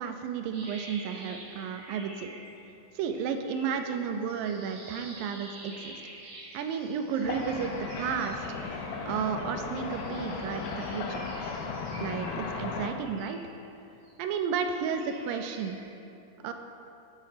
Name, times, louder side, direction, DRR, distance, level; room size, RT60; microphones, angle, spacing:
voice 1, 0.0-2.3 3.0-6.0 6.5-8.4 9.1-11.2 11.9-13.4 14.2-15.8 16.4-16.5, right 6 dB, 85° right, 6 dB, 2.2 m, -32 dB
sound 1, 0.5-2.7 3.0-9.3 9.7-14.1 14.6-15.8, right 2 dB, 50° right, 1.6 m, -48 dB
sound 2, 7.2-12.9, left 4 dB, 75° left, 2.0 m, -36 dB
9.8 x 5.3 x 5.7 m, 2.8 s
omnidirectional pair, 4.0 m